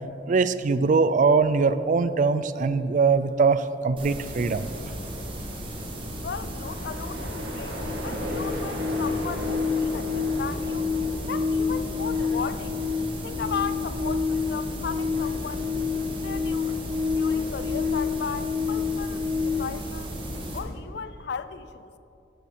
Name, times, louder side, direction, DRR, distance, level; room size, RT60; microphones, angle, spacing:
voice 1, 0.3-4.7, right 4 dB, 45° right, 14 dB, 0.4 m, -22 dB
sound 1, 4.0-20.6, equal, 30° right, 1.6 m, -35 dB
sound 2, 6.0-6.1 6.4-19.6, left 5 dB, 65° right, 1.1 m, -29 dB
voice 2, 6.2-7.8 8.0-10.9 11.3-12.8 13.2-15.7 16.2-16.8 17.1-20.1 20.5-21.9, left 6 dB, 65° left, 13 dB, 0.4 m, -36 dB
sound 3, 6.5-12.2, equal, 85° right, 1.8 m, -36 dB
14.0 x 7.0 x 4.9 m, 2.8 s
head